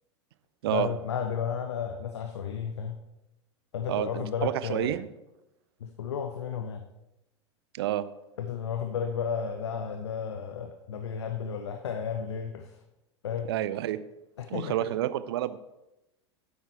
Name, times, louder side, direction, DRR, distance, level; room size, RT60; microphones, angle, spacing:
voice 1, 0.7-3.0 3.7-5.0 5.8-6.8 8.4-12.8 13.2-13.6 14.4-14.9, left 7 dB, 70° left, 6 dB, 0.8 m, -33 dB
voice 2, 3.9-5.1 7.7-8.0 13.5-14.0 14.5-15.6, right 13 dB, 60° right, 15 dB, 0.6 m, -29 dB
9.7 x 8.1 x 4.3 m, 0.94 s
figure-of-eight pair, 85°, 15 cm